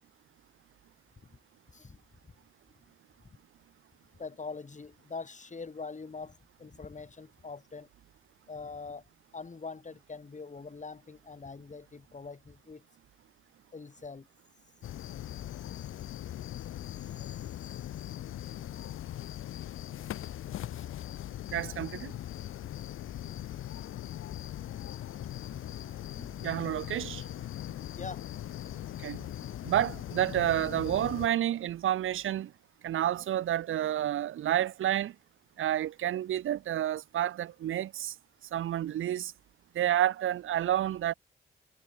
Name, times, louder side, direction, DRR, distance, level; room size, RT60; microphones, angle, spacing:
voice 1, 4.2-7.9 8.5-9.0 9.3-12.8 13.7-14.3 20.7-20.9 24.6-24.7 25.5-25.6 28.0-28.3, left 4 dB, 35° left, 2.1 m, -43 dB
sound 1, 14.8-31.3, left 12 dB, 80° left, 2.1 m, -40 dB
voice 2, 21.5-22.1 26.2-27.3 29.0-29.3 29.6-32.5 32.8-35.2 35.6-38.2 38.5-39.3 39.7-41.1, right 12 dB, 75° right, 1.6 m, -30 dB
hypercardioid pair, 40°, 21 cm